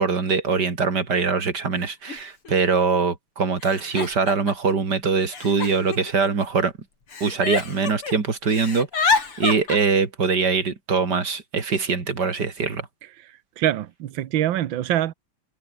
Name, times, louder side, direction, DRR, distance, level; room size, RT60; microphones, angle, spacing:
voice 1, 0.0-6.7 7.2-12.9, right 5 dB, 35° right, 3.3 m, -23 dB
Giggle, 1.0-1.1 2.1-2.2 2.4-3.0 3.6-4.7 5.3-6.6 7.1-8.1 8.4-9.8, left 4 dB, 45° left, 4.7 m, -27 dB
voice 2, 13.6-15.1, right 12 dB, 80° right, 1.1 m, -24 dB
omnidirectional pair, 3.4 m